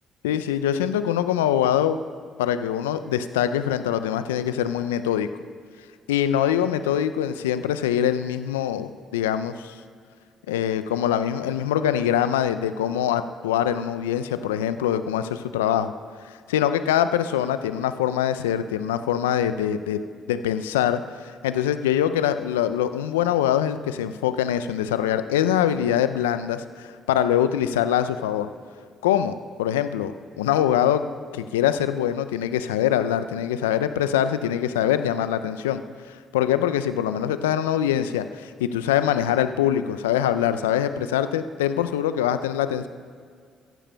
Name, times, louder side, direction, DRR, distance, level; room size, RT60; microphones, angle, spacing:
voice 1, 0.2-2.0 2.4-5.3 6.1-9.7 10.5-15.9 16.5-20.0 20.3-21.0 21.4-28.5 29.0-29.3 29.6-30.1 30.4-31.0 31.3-35.8 36.3-42.9, left 10 dB, 85° left, 11 dB, 0.4 m, -23 dB
15.0 x 15.0 x 2.2 m, 2.1 s
hypercardioid pair, 45°, 0 cm